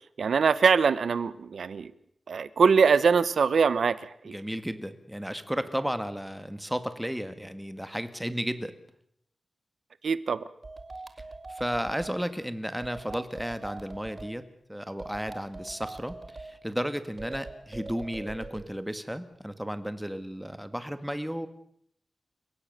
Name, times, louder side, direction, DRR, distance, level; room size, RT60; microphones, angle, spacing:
voice 1, 0.2-1.9 2.3-4.3 10.0-10.4, right 5 dB, 80° right, 16 dB, 1.2 m, -23 dB
voice 2, 4.2-8.7 11.5-14.4 14.7-21.5, equal, 5° right, 10 dB, 1.8 m, -33 dB
sound 1, 10.6-12.2 12.8-14.3 15.0-16.5 17.2-18.7, right 2 dB, 30° right, 2.0 m, -42 dB
30.0 x 17.0 x 6.8 m, 0.71 s
wide cardioid pair, 125°, 0 cm